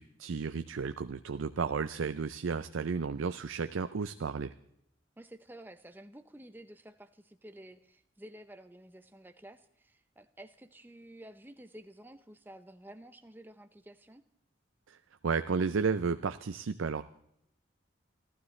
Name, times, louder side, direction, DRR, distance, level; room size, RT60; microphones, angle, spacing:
voice 1, 0.0-4.5 14.9-15.0 15.2-17.0, right 5 dB, 85° right, 11 dB, 0.5 m, -33 dB
voice 2, 5.2-14.2, right 1 dB, 10° right, 9 dB, 0.7 m, -51 dB
28.5 x 12.5 x 3.2 m, 0.74 s
head